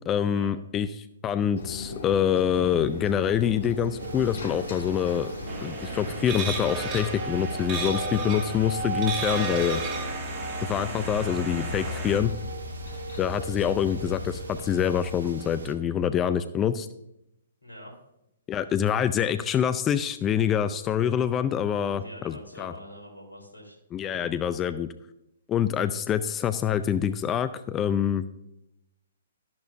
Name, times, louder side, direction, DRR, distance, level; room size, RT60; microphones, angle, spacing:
voice 1, 0.1-5.3 5.6-9.8 10.7-12.3 13.2-16.9 18.5-22.7 23.9-24.9 25.5-28.2, left 9 dB, 20° left, 12 dB, 0.4 m, -26 dB
sound 1, 1.6-15.3, left 4 dB, 50° left, 1.9 m, -39 dB
sound 2, 4.0-15.7, right 3 dB, 65° right, 1.4 m, -37 dB
sound 3, 5.5-12.2, right 3 dB, 25° right, 2.1 m, -34 dB
voice 2, 17.6-17.9 21.9-24.3, equal, 85° left, 1 dB, 3.6 m, -45 dB
12.5 x 11.5 x 2.6 m, 0.84 s
figure-of-eight pair, 125°, 0 cm